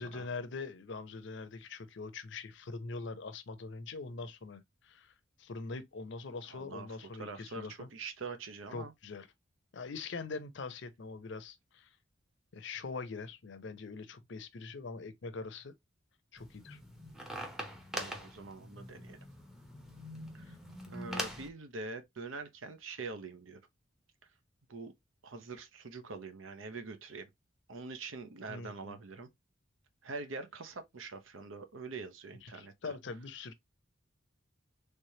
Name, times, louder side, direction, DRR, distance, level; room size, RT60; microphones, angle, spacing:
voice 1, 0.0-5.1 5.4-7.9 8.7-9.3 9.7-11.9 12.5-15.7 16.3-16.8 20.5-20.6 28.5-29.0 32.4-33.5, left 4 dB, 65° left, 0.6 m, -43 dB
voice 2, 6.5-6.9 7.2-8.9 17.9-19.3 20.3-20.5 20.9-23.6 24.7-24.9 25.2-27.3 27.7-29.3 30.0-32.9, right 3 dB, 80° right, 0.7 m, -44 dB
sound 1, 16.4-21.5, equal, ahead, 0.7 m, -43 dB
3.3 x 3.2 x 2.7 m
head